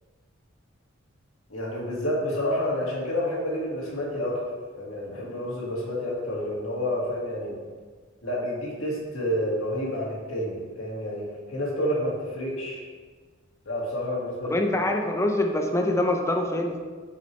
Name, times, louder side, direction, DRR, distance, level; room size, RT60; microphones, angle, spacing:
voice 1, 1.5-7.6 8.2-12.8 13.7-14.6, left 1 dB, 85° left, -3 dB, 1.9 m, -29 dB
voice 2, 14.5-16.8, left 1 dB, 15° left, 3 dB, 0.6 m, -24 dB
6.9 x 6.4 x 3.2 m, 1.5 s
head